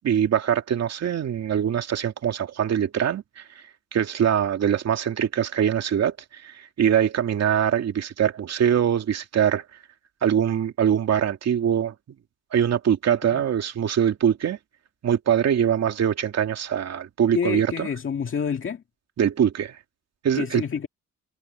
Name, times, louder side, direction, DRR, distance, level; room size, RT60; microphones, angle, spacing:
voice 1, 0.0-3.4 3.9-9.6 10.2-11.9 12.5-14.6 15.0-17.9 19.2-19.8 20.2-20.6, right 9 dB, 60° right, 2.6 m, -23 dB
voice 2, 17.3-18.8 20.3-20.9, left 6 dB, 40° left, 2.1 m, -28 dB
cardioid pair, 90°, 30 cm